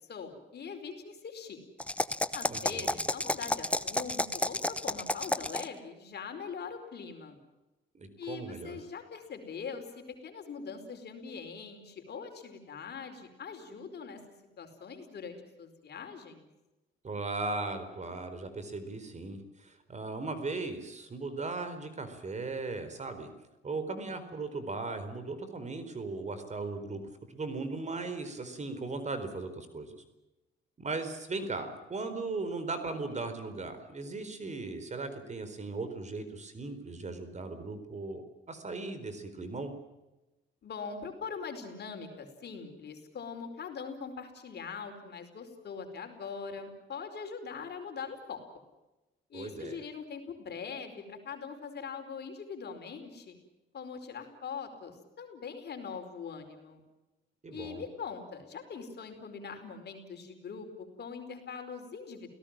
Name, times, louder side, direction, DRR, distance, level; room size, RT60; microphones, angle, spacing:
voice 1, 0.0-1.6 2.3-7.4 8.2-14.2 14.6-16.5 40.6-48.4 49.3-53.4 53.7-56.8 57.5-62.3, left 6 dB, 55° left, 6 dB, 4.8 m, -42 dB
sound 1, 1.8-5.8, left 1 dB, 5° left, 0.9 m, -31 dB
voice 2, 2.5-3.0 7.9-8.8 17.0-23.3 23.6-27.0 27.3-30.0 30.8-38.2 38.5-39.7 49.3-49.8 57.4-57.8, right 3 dB, 35° right, 10 dB, 4.3 m, -37 dB
29.0 x 17.5 x 7.5 m, 1.0 s
cardioid pair, 90°, 20 cm